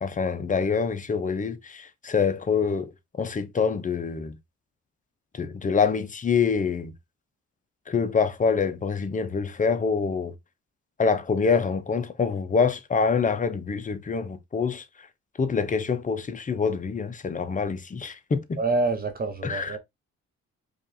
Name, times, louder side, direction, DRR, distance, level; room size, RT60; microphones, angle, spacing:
voice 1, 0.0-2.9 3.2-4.4 5.3-6.9 7.9-10.3 11.0-14.8 15.4-18.6 19.4-19.8, left 5 dB, 25° left, 0.7 m, -25 dB
voice 2, 18.6-19.8, right 3 dB, 30° right, 0.8 m, -26 dB
5.0 x 2.5 x 2.7 m
cardioid pair, 90°, 30 cm